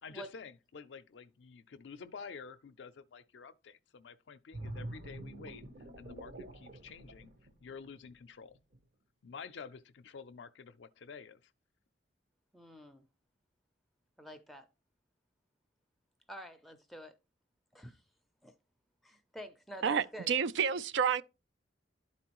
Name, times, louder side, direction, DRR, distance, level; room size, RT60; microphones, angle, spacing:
voice 1, 0.0-5.6 6.0-7.3 7.6-8.6 9.2-11.5, left 5 dB, 80° left, 0.4 m, -49 dB
sound 1, 4.5-8.1 8.5-8.8, right 1 dB, 55° right, 0.9 m, -46 dB
voice 2, 12.5-13.0 14.2-14.7 16.3-17.1 17.7-18.0 18.4-18.5 19.0-20.3, equal, ahead, 0.5 m, -48 dB
voice 3, 19.8-21.2, right 7 dB, 80° right, 0.4 m, -29 dB
11.5 x 4.2 x 2.9 m
head